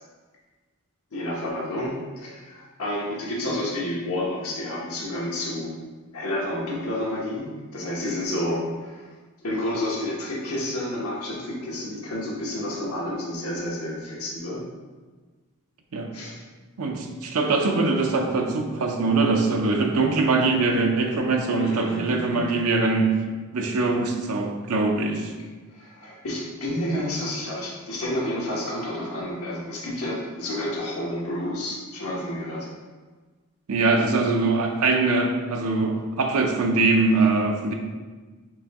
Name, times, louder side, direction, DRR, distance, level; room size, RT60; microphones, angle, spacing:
voice 1, 1.1-5.7 6.1-7.4 7.7-9.1 9.4-14.6 16.1-16.4 21.5-22.6 25.7-32.7, left 1 dB, 80° left, -4 dB, 1.1 m, -30 dB
voice 2, 16.8-23.1 23.5-25.3 33.7-37.7, right 3 dB, 85° right, 3 dB, 0.6 m, -22 dB
5.0 x 2.7 x 3.5 m, 1.3 s
head